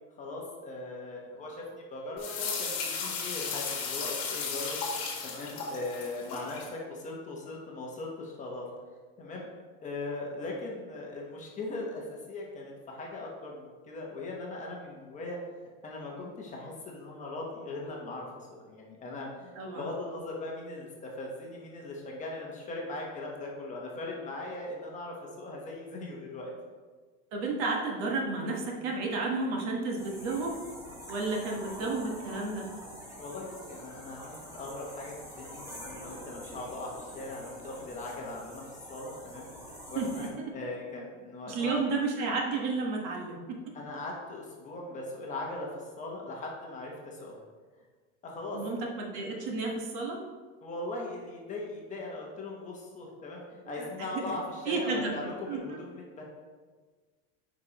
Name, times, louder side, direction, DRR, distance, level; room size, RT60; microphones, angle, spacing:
voice 1, 0.2-4.8 5.2-8.6 9.2-9.5 9.8-15.4 15.8-18.3 18.6-26.5 33.2-39.5 39.9-41.7 43.7-47.4 48.2-48.9 50.6-56.2, left 2 dB, 20° left, -2 dB, 1.1 m, -39 dB
sound 1, 2.2-6.7, left 5 dB, 50° left, 1.6 m, -35 dB
voice 2, 19.5-19.9 27.3-30.6 31.1-32.7 39.9-40.3 41.5-43.6 48.5-50.2 53.8-53.9 54.1-54.2 54.6-55.8, right 3 dB, 55° right, 0 dB, 1.3 m, -32 dB
sound 2, 30.0-40.3, equal, 10° right, 1.2 m, -46 dB
8.9 x 5.1 x 3.0 m, 1.4 s
cardioid pair, 165°, 33 cm